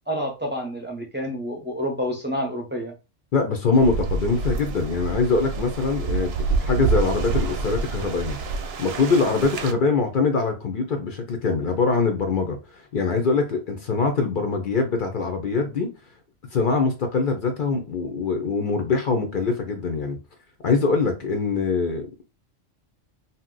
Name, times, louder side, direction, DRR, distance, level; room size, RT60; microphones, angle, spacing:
voice 1, 0.1-2.9, equal, 15° right, 0.4 m, -28 dB
voice 2, 3.3-6.3 6.6-8.4 8.8-15.9 16.5-20.2 20.6-22.2, left 4 dB, 55° left, 0.6 m, -23 dB
sound 1, 3.7-9.7, right 4 dB, 65° right, 0.7 m, -27 dB
2.8 x 2.1 x 3.7 m
omnidirectional pair, 1.3 m